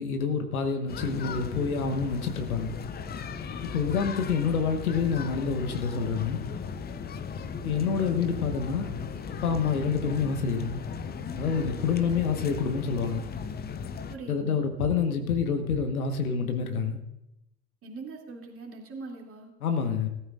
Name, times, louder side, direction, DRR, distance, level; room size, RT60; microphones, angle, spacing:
voice 1, 0.0-2.8 3.6-6.4 7.6-8.9 9.4-10.8 11.4-13.3 14.3-17.0 19.6-20.1, left 6 dB, 75° left, 6 dB, 1.5 m, -27 dB
sound 1, 0.9-14.2, left 6 dB, 20° left, 0.7 m, -37 dB
voice 2, 14.1-14.6 17.8-19.5, right 3 dB, 30° right, 0 dB, 2.8 m, -42 dB
18.5 x 12.5 x 2.5 m, 0.89 s
figure-of-eight pair, 70°, 44 cm